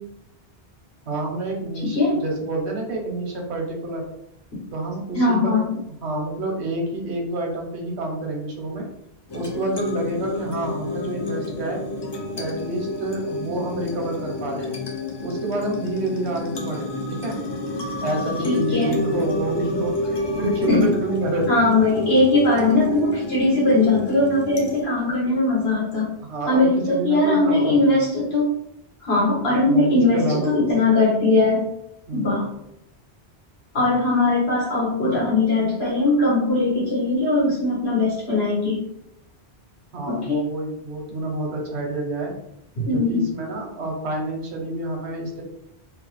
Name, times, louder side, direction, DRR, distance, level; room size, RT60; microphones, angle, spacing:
voice 1, 1.1-4.0 4.7-8.8 9.3-11.8 12.4-14.8 15.2-17.4 18.0-21.7 26.2-27.9 29.5-30.5 32.1-32.4 39.9-42.3 42.9-45.4, right 2 dB, 85° right, 0 dB, 1.1 m, -28 dB
voice 2, 1.8-2.1 5.1-5.7 18.4-19.0 20.7-20.8 21.5-26.1 26.5-28.5 29.0-31.6 32.1-32.4 33.7-38.8 40.1-40.4 42.7-43.3, left 2 dB, 70° left, -5 dB, 1.6 m, -20 dB
sound 1, 9.3-24.8, left 2 dB, 40° left, 0.3 m, -29 dB
3.2 x 2.0 x 3.1 m, 0.79 s
omnidirectional pair, 1.1 m